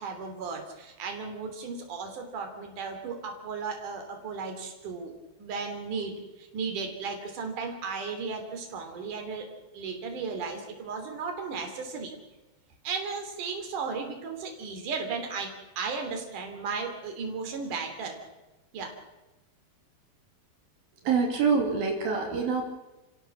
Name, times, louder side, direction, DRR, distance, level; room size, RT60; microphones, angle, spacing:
voice 1, 0.0-5.1 5.4-12.1 12.8-18.2 18.7-19.0, right 5 dB, 60° right, 3 dB, 4.6 m, -35 dB
voice 2, 21.0-22.6, right 5 dB, 75° right, 1 dB, 4.6 m, -25 dB
29.0 x 16.5 x 7.5 m, 1.1 s
omnidirectional pair, 4.2 m